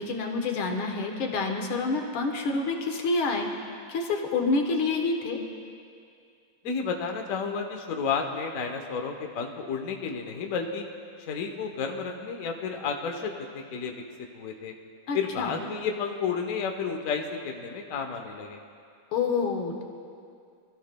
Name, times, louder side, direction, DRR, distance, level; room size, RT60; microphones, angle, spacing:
voice 1, 0.0-3.5 3.9-5.4 15.1-15.6 19.1-19.8, left 3 dB, 80° left, 3 dB, 2.0 m, -28 dB
voice 2, 6.6-10.9 11.3-13.9 14.3-14.7 15.1-18.6, left 5 dB, 55° left, 3 dB, 1.0 m, -31 dB
25.0 x 13.5 x 2.2 m, 2.4 s
omnidirectional pair, 2.4 m